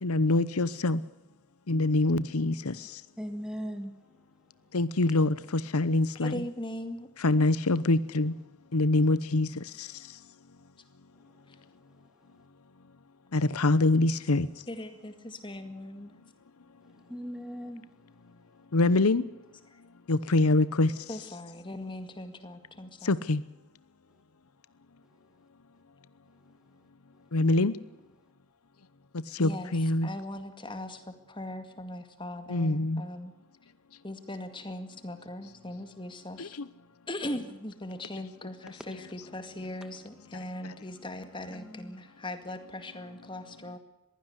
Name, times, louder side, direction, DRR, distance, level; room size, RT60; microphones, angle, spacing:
voice 1, 0.0-1.0 1.7-2.8 4.7-6.4 7.2-8.3 8.7-9.9 13.3-14.5 18.7-19.2 20.1-20.9 23.0-23.4 27.3-27.7 29.4-30.1 32.5-33.0 36.4-36.5, left 2 dB, 85° left, 17 dB, 0.9 m, -25 dB
voice 2, 3.2-3.9 17.0-17.8 41.5-42.0, equal, 5° right, 7 dB, 2.0 m, -38 dB
voice 3, 6.2-7.1 11.5-11.6 14.7-16.2 21.1-23.2 29.4-33.3 34.0-36.5 37.1-43.8, left 1 dB, 20° left, 9 dB, 2.1 m, -40 dB
22.0 x 16.0 x 8.2 m, 0.96 s
head